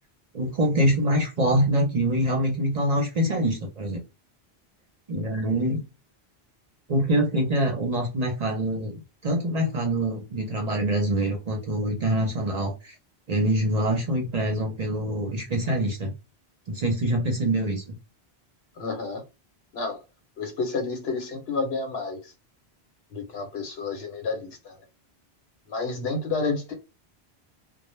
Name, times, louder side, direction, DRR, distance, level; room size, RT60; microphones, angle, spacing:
voice 1, 0.3-4.0 5.1-5.8 6.9-8.9 9.2-12.9 13.3-16.1 16.7-17.9, right 1 dB, 45° right, 0.6 m, -25 dB
voice 2, 18.8-19.2 19.7-20.0 20.4-22.3 23.1-24.8 25.7-26.7, left 4 dB, 75° left, 0.9 m, -30 dB
2.1 x 2.0 x 3.0 m
omnidirectional pair, 1.1 m